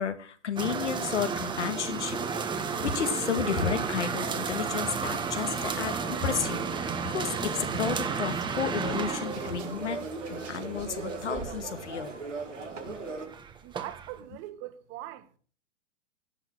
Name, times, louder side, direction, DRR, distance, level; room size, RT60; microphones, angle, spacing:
voice 1, 0.0-2.2 2.8-12.1 12.9-13.0, left 7 dB, 70° left, 2.1 m, -32 dB
sound 1, 0.6-14.2, right 5 dB, 10° right, 1.3 m, -33 dB
sound 2, 1.7-13.3, right 4 dB, 80° right, 4.9 m, -40 dB
sound 3, 8.4-11.8 12.1-14.5, right 6 dB, 65° right, 4.2 m, -54 dB
voice 2, 13.6-15.4, right 14 dB, 30° right, 1.4 m, -41 dB
17.5 x 6.1 x 6.2 m
figure-of-eight pair, 115°, 36 cm